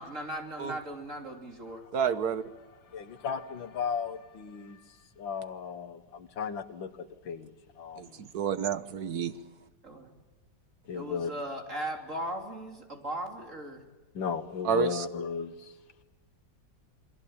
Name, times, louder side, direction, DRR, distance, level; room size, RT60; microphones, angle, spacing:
voice 1, 0.0-1.8 9.8-10.1 10.9-13.8, right 1 dB, 40° right, 3 dB, 3.4 m, -38 dB
voice 2, 1.9-2.4 8.0-9.3 14.6-15.0, right 7 dB, 60° right, 12 dB, 1.6 m, -29 dB
voice 3, 2.9-4.8 5.2-7.5 7.8-8.1 10.9-11.3 14.2-15.7, left 6 dB, 85° left, 10 dB, 2.2 m, -35 dB
28.0 x 22.5 x 8.8 m, 1.2 s
omnidirectional pair, 2.0 m